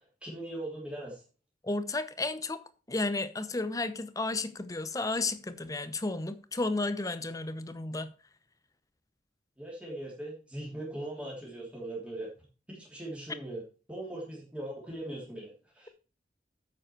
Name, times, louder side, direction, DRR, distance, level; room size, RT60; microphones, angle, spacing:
voice 1, 0.2-1.2 9.6-12.3 12.7-13.6 13.9-15.9, right 1 dB, 5° right, 3.0 m, -40 dB
voice 2, 1.6-2.6 2.9-8.1, left 2 dB, 20° left, 0.8 m, -33 dB
9.0 x 7.6 x 4.6 m
head